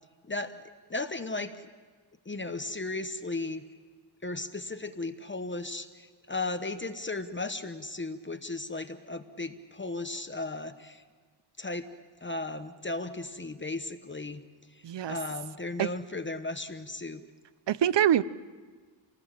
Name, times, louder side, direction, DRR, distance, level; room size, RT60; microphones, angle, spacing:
voice 1, 0.2-0.6 0.9-1.7 2.2-3.6 4.2-11.0 11.6-11.9 12.2-14.4 14.7-17.2, left 2 dB, 25° left, 9 dB, 1.0 m, -36 dB
voice 2, 14.8-15.2 15.8-15.9 17.7-18.2, right 10 dB, 75° right, 17 dB, 0.7 m, -24 dB
29.0 x 19.5 x 7.5 m, 1.4 s
wide cardioid pair, 100°, 43 cm